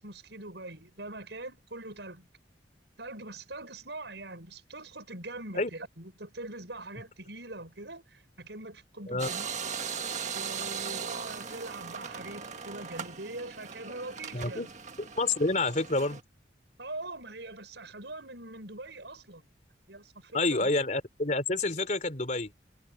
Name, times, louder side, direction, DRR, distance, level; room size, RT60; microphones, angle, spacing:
voice 1, 0.0-2.3 3.0-9.5 10.3-14.7 16.8-19.5 19.9-20.7, right 2 dB, 75° right, 6.9 m, -43 dB
sound 1, 9.2-16.2, right 6 dB, 40° right, 1.7 m, -38 dB
voice 2, 14.3-14.7 15.0-16.2 20.3-22.5, left 2 dB, 45° left, 3.6 m, -28 dB
head